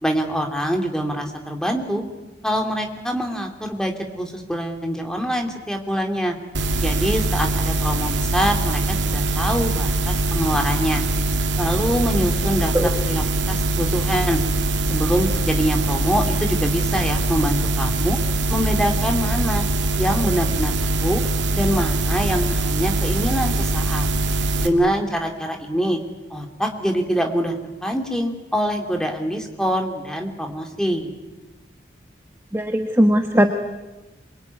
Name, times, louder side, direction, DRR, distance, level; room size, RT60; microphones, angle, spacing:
voice 1, 0.0-2.0 2.4-6.4 6.8-11.0 11.6-14.4 14.9-18.2 18.5-19.6 20.0-20.7 21.0-21.2 21.5-24.1 24.6-26.0 26.3-27.5 27.8-31.1, equal, 5° left, 2 dB, 2.9 m, -24 dB
sound 1, 6.5-24.7, right 2 dB, 85° right, 2.3 m, -22 dB
voice 2, 32.5-33.5, equal, 15° right, 5 dB, 1.2 m, -18 dB
26.5 x 23.0 x 9.6 m, 1.1 s
head